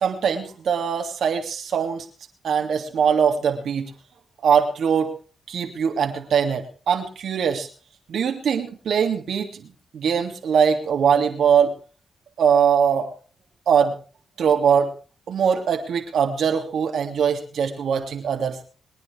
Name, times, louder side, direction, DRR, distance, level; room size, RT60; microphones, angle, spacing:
voice 1, 0.0-2.0 2.4-3.9 4.4-5.1 5.5-7.7 8.1-9.7 9.9-11.7 12.4-13.1 13.7-13.9 14.4-14.9 15.3-18.6, right 7 dB, 75° right, 4 dB, 3.0 m, -21 dB
23.5 x 9.9 x 4.9 m, 0.39 s
supercardioid pair, 55°, 0 cm